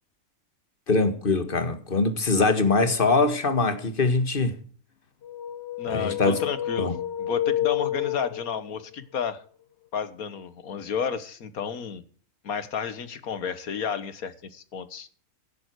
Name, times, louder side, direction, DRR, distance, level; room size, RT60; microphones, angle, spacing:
voice 1, 0.9-4.6 5.9-6.4 6.8-6.9, left 3 dB, 40° left, 1.8 m, -23 dB
sound 1, 5.2-8.8, left 12 dB, 55° left, 0.9 m, -30 dB
voice 2, 5.8-9.4 9.9-12.0 12.4-15.1, left 6 dB, 80° left, 1.8 m, -31 dB
15.5 x 11.0 x 4.7 m
omnidirectional pair, 1.5 m